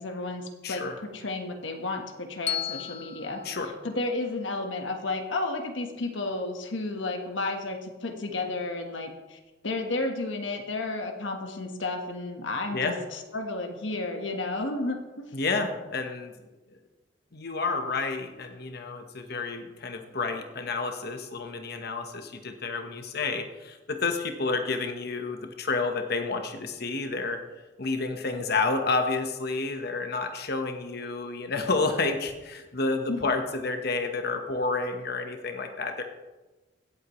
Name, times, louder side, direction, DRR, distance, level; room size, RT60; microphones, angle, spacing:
voice 1, 0.0-3.4 3.8-15.2 33.1-33.2, left 2 dB, 85° left, 3 dB, 1.4 m, -32 dB
voice 2, 0.6-0.9 3.4-3.7 12.7-13.0 15.3-16.3 17.3-27.4 27.8-36.0, left 3 dB, 60° left, 5 dB, 1.2 m, -30 dB
Bell, 2.5-4.6, left 10 dB, 30° left, 0.3 m, -36 dB
16.5 x 8.0 x 3.2 m, 1.1 s
head